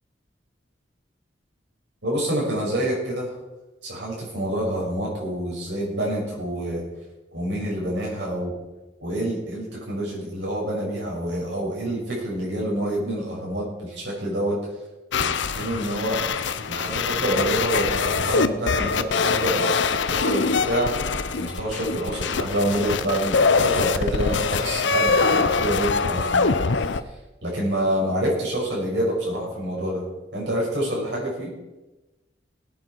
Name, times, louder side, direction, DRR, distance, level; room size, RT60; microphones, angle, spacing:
voice 1, 2.0-3.3 3.8-6.8 7.3-8.5 9.0-14.6 15.2-16.2 16.7-19.8 20.1-26.6 27.4-30.0 30.3-31.5, right 1 dB, 75° right, -4 dB, 6.2 m, -27 dB
sound 1, 15.1-27.0, left 4 dB, 85° left, 0.7 m, -23 dB
18.5 x 9.4 x 4.7 m, 1.1 s
head